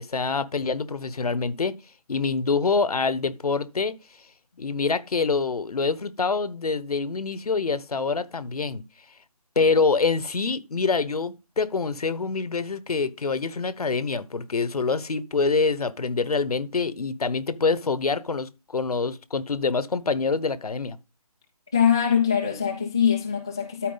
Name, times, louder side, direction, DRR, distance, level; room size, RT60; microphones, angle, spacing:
voice 1, 0.0-1.7 2.1-4.0 4.6-8.8 9.6-21.0, left 4 dB, 70° left, 1.1 m, -25 dB
voice 2, 21.7-23.9, left 8 dB, 5° left, 0.4 m, -22 dB
13.0 x 4.5 x 3.9 m
figure-of-eight pair, 160°, 20 cm